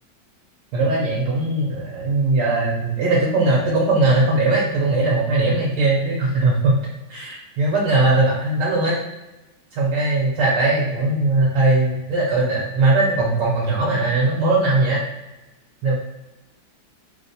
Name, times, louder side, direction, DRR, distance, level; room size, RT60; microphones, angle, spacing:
voice 1, 0.7-6.8 7.1-9.0 9.7-15.0 15.8-15.9, right 2 dB, 80° right, -4 dB, 1.4 m, -19 dB
3.2 x 2.0 x 4.0 m, 1.0 s
omnidirectional pair, 1.9 m